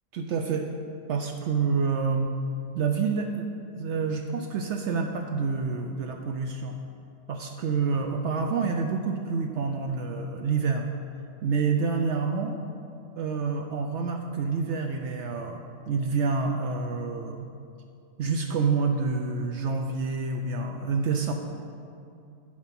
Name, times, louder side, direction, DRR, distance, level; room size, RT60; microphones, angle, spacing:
voice 1, 0.1-0.7 1.1-2.3 2.7-6.8 7.3-10.9 11.4-12.6 13.2-15.6 15.9-17.5 18.2-21.3, right 5 dB, 70° right, 3 dB, 0.8 m, -28 dB
10.5 x 4.7 x 5.8 m, 2.5 s
omnidirectional pair, 1.3 m